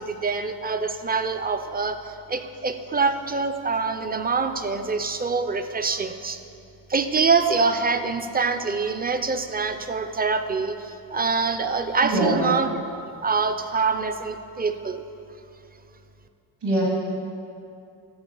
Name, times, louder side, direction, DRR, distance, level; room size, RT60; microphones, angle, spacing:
voice 1, 0.0-6.4 6.9-12.7 13.2-15.0, right 4 dB, 25° right, 8 dB, 0.4 m, -25 dB
voice 2, 12.0-12.5 16.6-16.8, right 1 dB, 70° right, -4 dB, 2.2 m, -22 dB
11.5 x 4.5 x 7.0 m, 2.6 s
wide cardioid pair, 135°, 44 cm